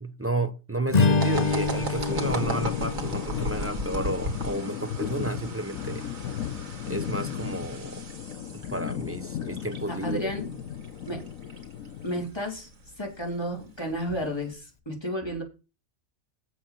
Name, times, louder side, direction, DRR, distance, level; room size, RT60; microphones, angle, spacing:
voice 1, 0.0-6.0 6.9-8.0 8.5-10.3, right 2 dB, 15° right, 0.7 m, -32 dB
Strum, 0.9-5.3, left 4 dB, 40° left, 0.7 m, -28 dB
sound 1, 1.2-14.5, right 3 dB, 75° right, 2.2 m, -39 dB
sound 2, 2.1-12.1, left 9 dB, 85° left, 1.2 m, -35 dB
voice 2, 9.9-10.5 11.1-11.2 12.0-12.7 13.0-15.4, equal, 20° left, 3.6 m, -32 dB
7.8 x 6.4 x 7.6 m
omnidirectional pair, 1.4 m